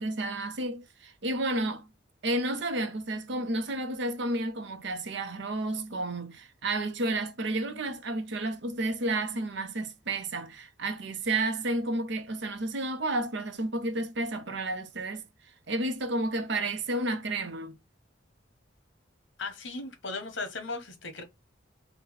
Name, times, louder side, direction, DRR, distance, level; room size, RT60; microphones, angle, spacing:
voice 1, 0.0-1.9 2.2-15.2 15.7-17.8, right 2 dB, 65° right, 0.7 m, -31 dB
voice 2, 19.4-21.2, left 3 dB, 70° left, 1.1 m, -37 dB
4.0 x 2.2 x 4.0 m
head